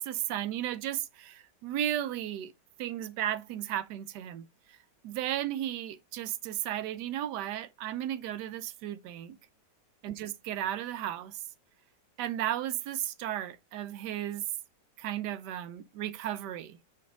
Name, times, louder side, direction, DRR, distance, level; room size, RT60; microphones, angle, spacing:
voice 1, 0.0-2.5 2.8-4.5 5.0-9.4 10.0-11.4 12.2-14.4 15.0-16.8, right 12 dB, 75° right, 1.1 m, -34 dB
6.4 x 4.1 x 3.6 m
omnidirectional pair, 2.0 m